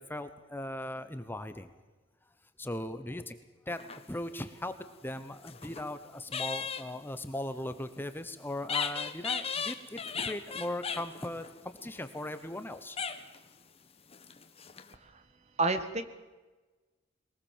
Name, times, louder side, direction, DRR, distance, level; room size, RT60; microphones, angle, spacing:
voice 1, 0.0-1.8 2.6-3.4 3.7-3.8 4.1-4.7 5.0-13.0, left 1 dB, 10° left, 10 dB, 0.9 m, -38 dB
sound 1, 3.7-4.5 5.2-5.9 6.3-6.9 8.6-12.6 13.0-13.5 14.1-14.9, left 6 dB, 30° left, 1.3 m, -37 dB
voice 2, 15.6-16.0, right 3 dB, 35° right, 10 dB, 1.4 m, -29 dB
22.0 x 19.5 x 7.4 m, 1.2 s
head